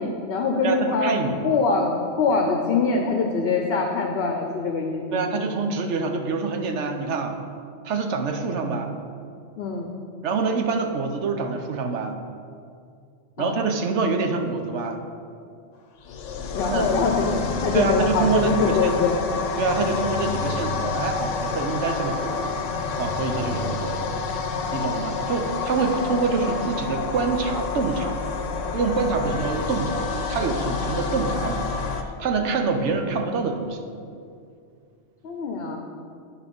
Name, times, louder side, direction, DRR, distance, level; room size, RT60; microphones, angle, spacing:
voice 1, 0.0-5.2 9.6-9.9 13.4-13.6 16.5-19.2 26.0-26.2 35.2-35.8, left 4 dB, 60° left, 2 dB, 0.8 m, -24 dB
voice 2, 0.6-1.4 5.1-7.4 7.8-8.9 10.2-12.2 13.4-15.0 16.7-16.9 17.7-18.9 19.6-22.5 23.0-24.1 24.7-28.2 28.5-31.7 32.0-33.8, right 4 dB, 70° right, 5 dB, 1.0 m, -26 dB
sound 1, 16.0-32.0, left 5 dB, 85° left, 1.0 m, -28 dB
9.9 x 4.2 x 5.3 m, 2.4 s
omnidirectional pair, 1.2 m